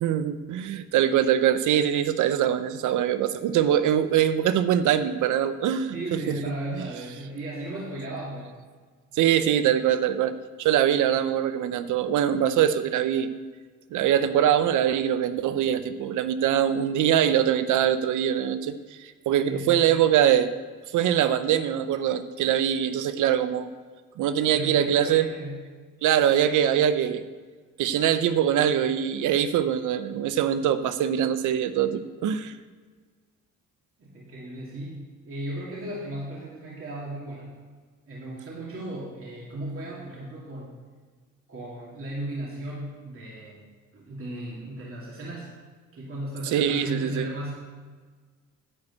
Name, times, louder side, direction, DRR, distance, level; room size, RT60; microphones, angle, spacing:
voice 1, 0.0-6.2 9.1-13.3 13.9-20.5 20.9-23.7 24.2-25.3 26.0-27.2 27.8-32.5 46.5-47.3, right 10 dB, 80° right, 12 dB, 0.7 m, -23 dB
voice 2, 5.9-8.5 19.4-20.0 24.5-25.7 34.0-37.6 38.1-40.7 41.5-43.6 43.9-45.5 45.9-47.5, right 1 dB, 45° right, -5 dB, 2.6 m, -36 dB
11.0 x 5.1 x 8.4 m, 1.5 s
cardioid pair, 90°, 30 cm